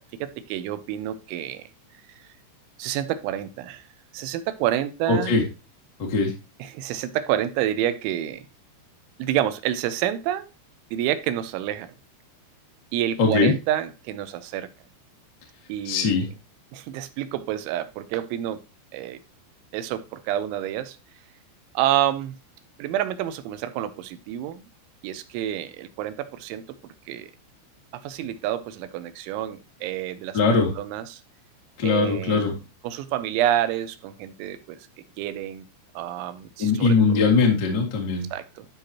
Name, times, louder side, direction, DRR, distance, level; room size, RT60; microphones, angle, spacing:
voice 1, 0.2-1.7 2.8-3.9 4.1-5.3 6.6-8.5 9.2-10.5 10.9-11.9 12.9-14.7 15.7-16.2 16.7-18.6 18.9-19.2 19.7-21.0 21.7-22.4 22.8-24.6 25.0-26.6 27.1-27.3 27.9-30.4 30.8-31.2 31.8-32.5 32.8-34.9 35.2-35.7 36.0-37.2 38.3-38.7, right 12 dB, 90° right, 12 dB, 3.1 m, -28 dB
voice 2, 5.1-5.4 6.0-6.3 13.2-13.5 15.8-16.3 30.3-30.7 31.8-32.5 36.6-38.3, left 4 dB, 30° left, 0 dB, 2.1 m, -20 dB
13.0 x 4.9 x 2.8 m, 0.29 s
omnidirectional pair, 5.5 m